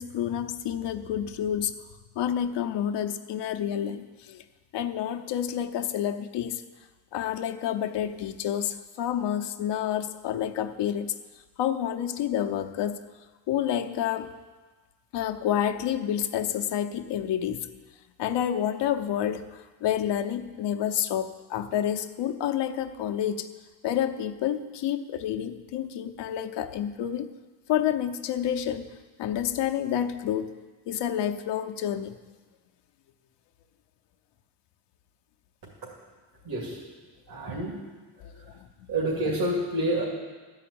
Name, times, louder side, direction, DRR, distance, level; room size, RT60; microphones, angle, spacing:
voice 1, 0.0-1.7 2.2-4.4 4.7-6.6 7.1-11.1 11.6-13.0 13.5-14.3 15.1-17.7 18.2-23.5 23.8-27.3 27.7-28.9 29.2-30.5 30.9-32.2 38.2-38.7, left 10 dB, 80° left, 6 dB, 0.8 m, -29 dB
voice 2, 36.4-36.8 37.3-37.7 38.9-40.0, right 1 dB, 60° right, -4 dB, 2.7 m, -28 dB
12.5 x 5.7 x 8.6 m, 1.3 s
cardioid pair, 105°, 41 cm